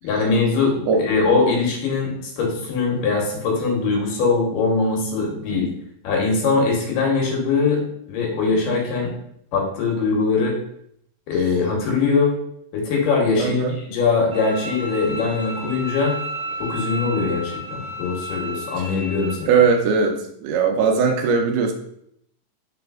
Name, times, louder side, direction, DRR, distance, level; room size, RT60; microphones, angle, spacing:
voice 1, 0.0-5.7 6.0-9.1 9.5-10.6 11.3-12.3 12.7-16.1 16.6-19.6, left 4 dB, 80° left, -1 dB, 2.6 m, -22 dB
voice 2, 13.3-13.7 19.5-20.1 20.4-21.7, right 5 dB, 80° right, 3 dB, 2.1 m, -19 dB
Bowed string instrument, 14.3-19.3, right 1 dB, 60° right, 0.7 m, -32 dB
4.9 x 4.1 x 2.3 m, 0.72 s
omnidirectional pair, 3.8 m